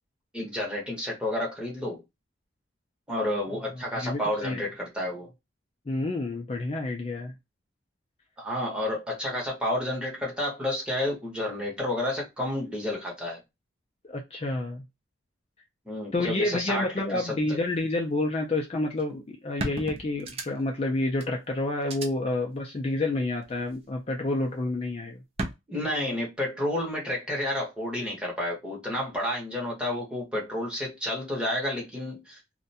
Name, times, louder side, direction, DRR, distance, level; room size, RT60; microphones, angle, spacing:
voice 1, 0.3-2.0 3.1-5.3 8.4-13.4 15.8-17.6 25.7-32.4, left 1 dB, 5° right, 0.9 m, -30 dB
voice 2, 3.9-4.6 5.9-7.3 14.1-14.8 16.1-25.2, left 2 dB, 30° left, 0.4 m, -29 dB
sound 1, 19.0-19.1 19.6-20.8 21.2-21.3 21.8-22.1 23.4-23.9 25.4-25.5, right 2 dB, 30° right, 0.4 m, -34 dB
2.4 x 2.1 x 2.6 m
head